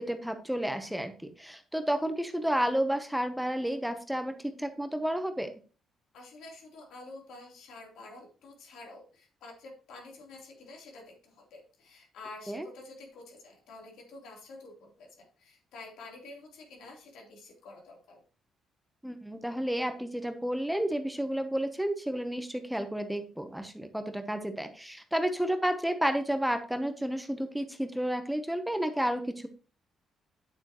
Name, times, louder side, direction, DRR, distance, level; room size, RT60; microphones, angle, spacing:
voice 1, 0.0-5.5 12.5-12.7 19.0-29.5, equal, ahead, 8 dB, 0.9 m, -31 dB
voice 2, 6.1-18.2, left 2 dB, 80° left, 0 dB, 3.5 m, -49 dB
8.9 x 8.0 x 3.0 m, 0.37 s
cardioid pair, 90°, 0 cm